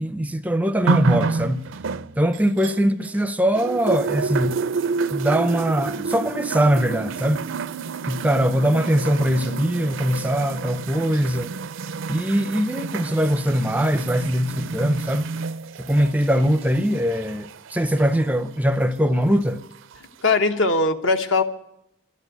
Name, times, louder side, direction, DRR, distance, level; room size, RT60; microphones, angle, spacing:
voice 1, 0.0-1.7 2.2-4.6 5.1-7.4 8.1-11.6 12.1-15.3 15.8-19.6, equal, 5° right, 0.5 m, -21 dB
sound 1, 0.9-3.2 3.6-18.3 19.2-19.3, right 4 dB, 70° right, 0.5 m, -28 dB
voice 2, 20.2-21.4, left 3 dB, 65° left, 1.1 m, -20 dB
12.5 x 11.0 x 9.2 m
head